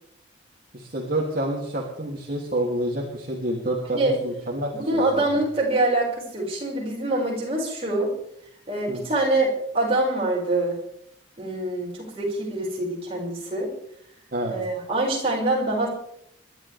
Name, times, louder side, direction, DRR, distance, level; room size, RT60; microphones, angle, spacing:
voice 1, 0.7-5.2 8.9-9.0 14.3-14.6, right 1 dB, 45° right, -3 dB, 3.1 m, -28 dB
voice 2, 4.7-8.1 8.7-10.8 11.4-13.7 14.4-15.9, right 2 dB, 30° right, -4 dB, 6.4 m, -25 dB
28.5 x 12.5 x 3.6 m, 0.72 s
head